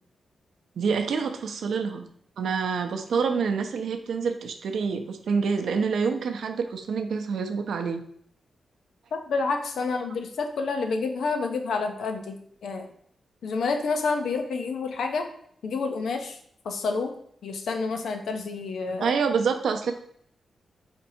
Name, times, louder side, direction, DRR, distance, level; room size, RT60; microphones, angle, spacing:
voice 1, 0.8-2.1 2.4-8.0 19.0-19.9, right 5 dB, 80° right, 7 dB, 0.5 m, -27 dB
voice 2, 9.1-12.4 12.6-12.9 13.4-15.3 15.6-16.4 16.6-17.1 17.4-19.2, left 4 dB, 90° left, 5 dB, 0.6 m, -28 dB
4.4 x 2.7 x 4.2 m, 0.65 s
wide cardioid pair, 165°, 0 cm